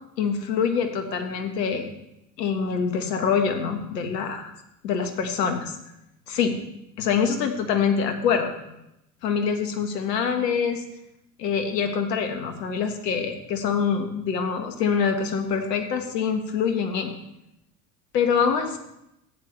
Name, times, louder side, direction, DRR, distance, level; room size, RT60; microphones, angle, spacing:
voice 1, 0.2-1.9 2.4-4.5 4.8-5.8 6.3-6.6 7.0-8.8 9.2-10.8 11.4-17.1 18.1-18.8, left 6 dB, 75° left, 6 dB, 1.7 m, -25 dB
14.0 x 9.6 x 3.4 m, 0.84 s
hypercardioid pair, 75°, 49 cm